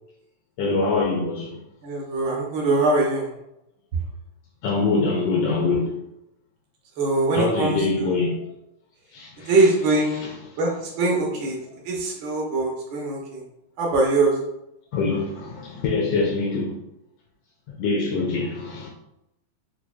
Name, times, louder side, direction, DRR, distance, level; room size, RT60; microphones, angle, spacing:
voice 1, 0.6-1.6 4.6-5.9 7.3-8.4 9.1-9.5 14.9-16.8 17.8-18.9, left 3 dB, 85° left, 1.3 m, -24 dB
voice 2, 1.8-3.3 7.0-8.1 9.5-10.3 10.5-11.6 11.8-13.4 13.8-14.4, right 2 dB, 75° right, 1.1 m, -22 dB
6.1 x 2.2 x 2.3 m
omnidirectional pair, 3.3 m